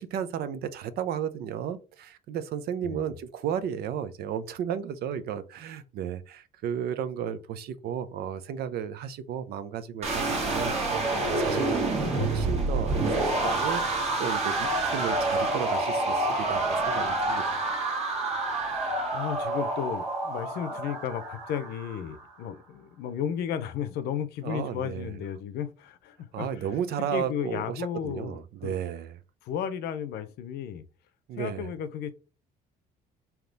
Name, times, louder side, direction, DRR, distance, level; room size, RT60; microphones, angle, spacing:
voice 1, 0.0-17.7 24.4-25.1 26.3-29.2 31.3-31.6, right 8 dB, 70° right, 0.5 m, -34 dB
voice 2, 2.8-3.2 18.8-26.7 27.0-28.8 29.4-30.8 31.4-32.1, left 8 dB, 75° left, 0.6 m, -34 dB
sound 1, 10.0-22.1, right 2 dB, 40° right, 1.4 m, -28 dB
3.5 x 2.9 x 3.9 m
cardioid pair, 110°, 17 cm